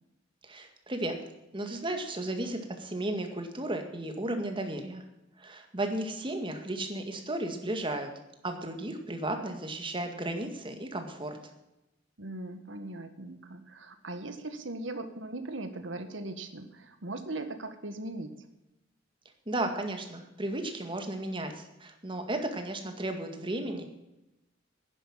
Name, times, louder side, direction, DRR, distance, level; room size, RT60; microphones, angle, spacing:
voice 1, 0.4-1.2 1.5-5.0 5.4-8.1 8.4-11.4 19.5-23.8, right 1 dB, 25° right, 5 dB, 1.9 m, -34 dB
voice 2, 12.2-18.3, right 2 dB, 75° right, 8 dB, 1.7 m, -39 dB
11.0 x 10.5 x 7.5 m, 0.93 s
head